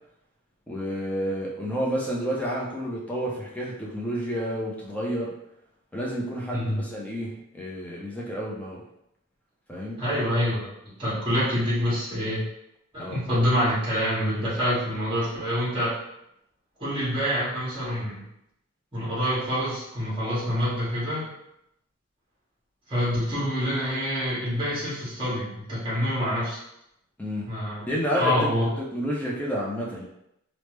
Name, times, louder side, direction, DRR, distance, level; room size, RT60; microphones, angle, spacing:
voice 1, 0.7-5.3 5.9-8.8 9.7-10.0 13.0-13.2 27.2-27.5 27.9-28.5 28.9-30.0, equal, 5° left, -4 dB, 0.5 m, -30 dB
voice 2, 10.0-10.7 11.0-12.4 12.9-16.0 16.8-18.2 18.9-21.3 22.9-26.6 27.5-27.9 28.2-28.7, equal, 25° right, -9 dB, 1.4 m, -26 dB
3.2 x 2.0 x 3.2 m, 0.80 s
head